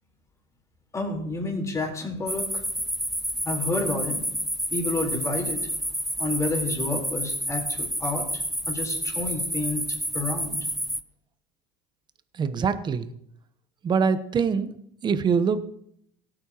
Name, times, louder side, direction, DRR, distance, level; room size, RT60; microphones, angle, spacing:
voice 1, 0.9-2.6 3.4-4.2 4.7-5.7 6.2-9.8 10.1-10.6, left 2 dB, 25° left, 1 dB, 3.9 m, -30 dB
sound 1, 2.3-11.0, right 1 dB, ahead, 0.5 m, -29 dB
voice 2, 12.4-13.1 13.8-14.7 15.0-15.6, right 6 dB, 35° right, 12 dB, 1.0 m, -23 dB
17.5 x 8.9 x 2.9 m, 0.70 s
supercardioid pair, 95°, 14 cm